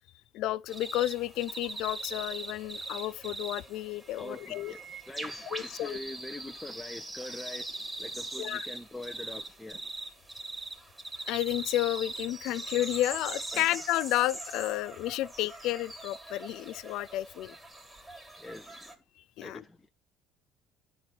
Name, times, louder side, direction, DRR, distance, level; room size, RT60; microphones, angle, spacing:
voice 1, 0.3-4.7 5.5-6.0 8.4-8.6 11.3-17.5 19.4-19.6, left 15 dB, 70° left, 0.4 m, -31 dB
sound 1, 0.7-18.9, right 2 dB, 15° right, 2.3 m, -41 dB
voice 2, 4.2-9.9 13.5-13.7 18.4-19.0 19.4-19.9, left 2 dB, 10° left, 0.8 m, -44 dB
10.5 x 4.1 x 4.4 m
supercardioid pair, 75°, 0 cm